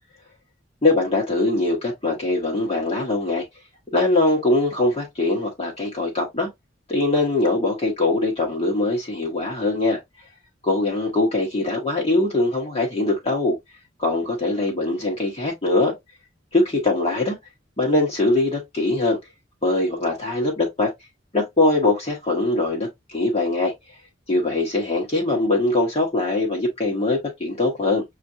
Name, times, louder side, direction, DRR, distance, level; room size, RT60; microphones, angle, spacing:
voice 1, 0.8-3.4 3.9-6.5 6.9-10.0 10.6-13.6 14.0-15.9 16.5-17.3 17.8-19.2 19.6-20.9 21.3-23.7 24.3-28.0, left 2 dB, 30° left, 1.2 m, -22 dB
6.6 x 2.5 x 2.5 m
head